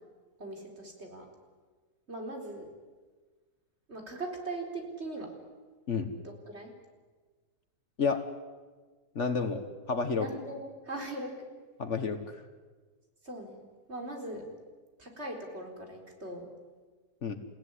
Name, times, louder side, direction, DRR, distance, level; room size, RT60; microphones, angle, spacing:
voice 1, 0.4-1.3 2.1-2.7 3.9-5.3 6.2-6.7 10.2-11.3 13.2-13.6 13.9-14.5 15.0-16.5, right 2 dB, 45° right, 2 dB, 4.6 m, -40 dB
voice 2, 9.1-9.6 9.9-10.3 11.8-12.4 17.2-17.4, left 5 dB, 50° left, 8 dB, 1.7 m, -30 dB
29.0 x 16.5 x 9.9 m, 1.4 s
omnidirectional pair, 1.6 m